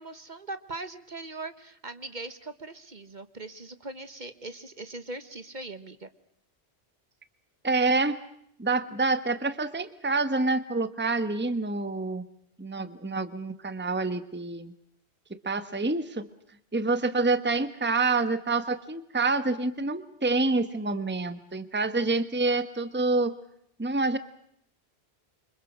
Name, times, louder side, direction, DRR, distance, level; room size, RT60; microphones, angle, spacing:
voice 1, 0.0-6.1, right 2 dB, 45° right, 11 dB, 1.4 m, -40 dB
voice 2, 7.6-8.2 8.6-12.2 12.6-14.7 15.3-16.3 16.7-23.4 23.8-24.2, right 3 dB, 10° right, 12 dB, 1.1 m, -27 dB
28.5 x 25.5 x 6.3 m, 0.72 s
omnidirectional pair, 1.1 m